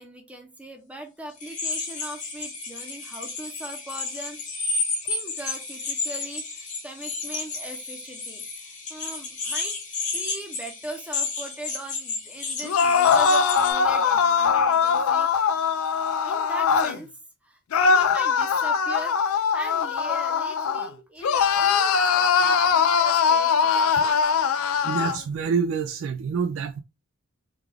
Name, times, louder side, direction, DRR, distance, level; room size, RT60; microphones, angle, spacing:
voice 1, 0.0-4.4 5.0-8.4 8.9-15.3 16.2-17.1 17.4-17.6 17.9-24.2, right 1 dB, 5° right, 0.6 m, -40 dB
sound 1, 1.4-13.7, left 4 dB, 35° left, 1.0 m, -32 dB
sound 2, 12.6-17.0 17.7-20.9 21.2-25.2, left 6 dB, 85° left, 0.4 m, -21 dB
voice 2, 24.8-26.8, right 6 dB, 65° right, 0.3 m, -27 dB
3.5 x 2.3 x 3.3 m
head